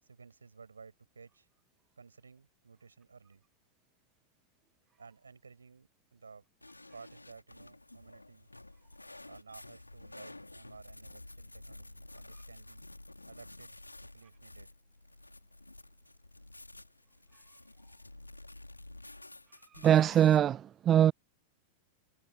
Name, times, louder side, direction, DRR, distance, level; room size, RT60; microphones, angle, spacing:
voice 1, 0.0-1.5 2.0-3.4 5.0-6.4 6.9-8.5 9.3-12.9 13.3-13.8 14.1-14.7, right 5 dB, 75° right, 7.5 m, -55 dB
sound 1, 6.6-20.4, left 2 dB, 85° left, 3.5 m, -51 dB
voice 2, 19.7-21.1, right 10 dB, 25° right, 0.4 m, -23 dB
figure-of-eight pair, 90°, 0 cm